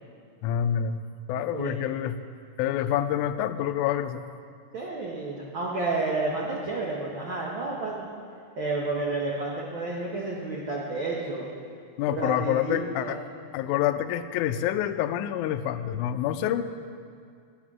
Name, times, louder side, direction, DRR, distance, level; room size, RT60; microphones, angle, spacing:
voice 1, 0.4-1.0 1.3-2.2 2.6-4.2 12.0-13.2 13.5-16.6, left 10 dB, 85° left, 9 dB, 1.8 m, -27 dB
voice 2, 4.7-8.0 8.6-11.5 12.1-13.2, right 3 dB, 65° right, -4 dB, 1.2 m, -30 dB
11.5 x 9.4 x 6.1 m, 2.2 s
omnidirectional pair, 4.0 m